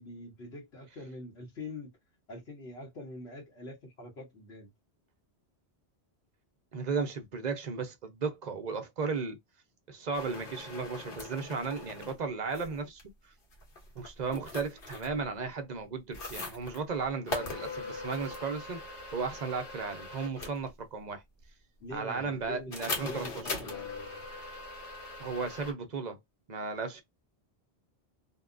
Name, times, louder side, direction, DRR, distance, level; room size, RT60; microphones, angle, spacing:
voice 1, 0.0-2.0 2.3-4.7 21.8-24.2, left 1 dB, 75° left, 1.3 m, -44 dB
voice 2, 6.7-9.4 9.9-13.0 13.9-18.8 19.1-21.2 21.9-23.3 25.2-26.2 26.5-27.0, right 4 dB, 45° right, 0.7 m, -35 dB
sound 1, 10.1-12.2 12.5-13.0 13.5-15.2 16.1-16.8 17.3-20.7 22.7-25.7, left 3 dB, 60° left, 1.2 m, -40 dB
2.8 x 2.2 x 2.4 m
omnidirectional pair, 1.1 m